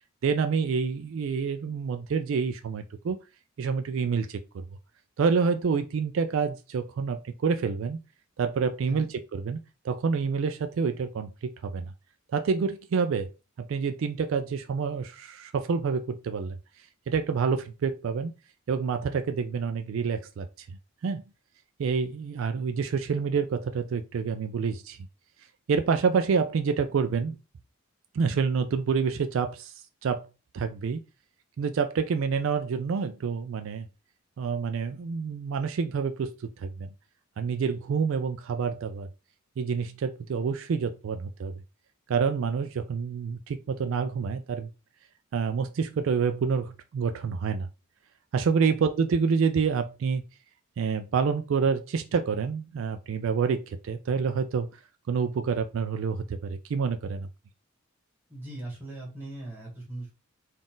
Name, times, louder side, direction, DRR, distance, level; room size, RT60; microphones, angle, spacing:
voice 1, 0.2-3.2 3.6-4.6 5.2-8.0 8.4-9.6 9.8-11.9 12.3-13.3 13.6-16.6 17.1-18.3 18.7-20.7 21.0-21.2 21.8-25.0 25.7-27.4 28.1-30.3 30.5-31.0 31.6-33.9 34.4-36.9 37.4-39.1 39.6-41.5 42.1-44.7 45.3-47.7 48.3-50.2 50.8-54.8 55.1-57.3, right 5 dB, 65° right, 0.3 m, -28 dB
voice 2, 58.3-60.1, right 2 dB, 10° right, 1.7 m, -39 dB
3.9 x 2.4 x 3.7 m
head